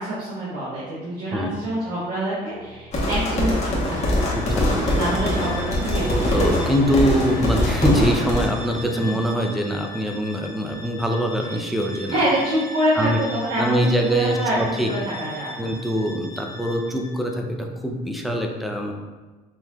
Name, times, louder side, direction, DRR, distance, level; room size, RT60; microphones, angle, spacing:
voice 1, 0.0-4.3 5.0-6.4 8.9-9.0 12.1-14.5 14.8-15.5, right 1 dB, 65° right, -9 dB, 1.4 m, -26 dB
sound 1, 2.6-9.9, right 1 dB, 90° right, 1.0 m, -32 dB
sound 2, 2.9-8.5, left 1 dB, 40° left, 1.2 m, -23 dB
Bowed string instrument, 3.4-17.3, left 1 dB, 20° left, 1.0 m, -40 dB
voice 2, 4.3-5.0 6.3-12.2 13.0-13.2 13.6-14.9 15.6-18.9, equal, ahead, 1 dB, 0.5 m, -23 dB
5.3 x 3.0 x 2.4 m, 1.3 s
cardioid pair, 110°, 17 cm